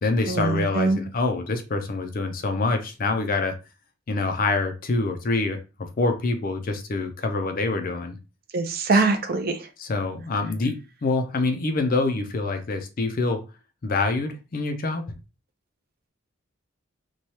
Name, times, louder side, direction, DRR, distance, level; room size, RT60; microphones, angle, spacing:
voice 1, 0.0-3.6 4.1-5.6 6.0-8.2 8.9-9.0 9.8-13.4 13.8-15.2, left 3 dB, 40° left, 6 dB, 0.4 m, -26 dB
voice 2, 8.5-9.6, right 3 dB, 45° right, 6 dB, 0.5 m, -22 dB
3.1 x 2.2 x 2.7 m, 0.29 s
head